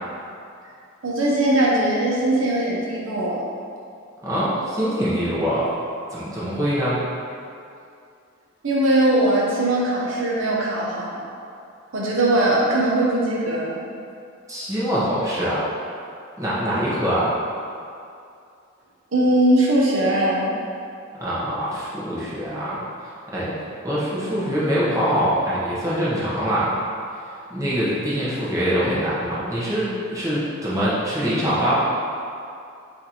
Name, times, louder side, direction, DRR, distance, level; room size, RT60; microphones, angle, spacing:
voice 1, 1.0-3.5 8.6-11.3 11.9-13.8 19.1-20.5, right 1 dB, 65° right, -5 dB, 0.8 m, -20 dB
voice 2, 4.2-5.7 6.1-7.0 14.5-15.7 16.4-17.3 21.2-22.8 23.3-23.5 23.8-26.8 27.5-31.7, equal, 15° right, -9 dB, 0.9 m, -23 dB
5.0 x 2.6 x 2.9 m, 2.5 s
head